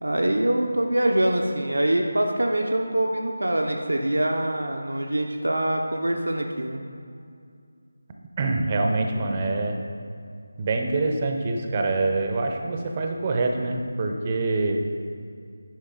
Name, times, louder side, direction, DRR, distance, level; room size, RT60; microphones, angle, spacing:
voice 1, 0.0-6.8, right 1 dB, 75° right, 2 dB, 0.6 m, -24 dB
voice 2, 8.4-9.8 10.6-14.8, right 3 dB, 30° right, 3 dB, 0.7 m, -25 dB
10.0 x 5.2 x 3.8 m, 2.3 s
figure-of-eight pair, 160°, 0 cm